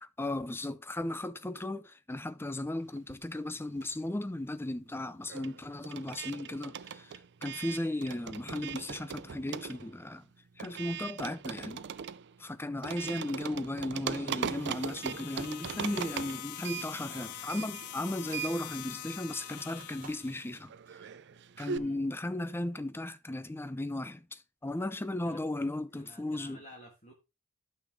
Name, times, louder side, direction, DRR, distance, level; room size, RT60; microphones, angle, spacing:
voice 1, 0.0-10.3 10.6-11.8 12.4-20.7 21.6-26.6, left 1 dB, 10° left, 0.5 m, -36 dB
sound 1, 3.0-4.2 4.5-21.8, right 7 dB, 55° right, 0.5 m, -41 dB
sound 2, 14.4-20.6, left 13 dB, 85° left, 0.4 m, -44 dB
sound 3, 18.0-18.5 18.8-20.5 21.0-21.1 21.6-22.0 22.5-22.9, right 4 dB, 40° right, 2.2 m, -56 dB
voice 2, 25.9-27.1, equal, 35° left, 2.0 m, -52 dB
12.0 x 6.0 x 3.6 m
head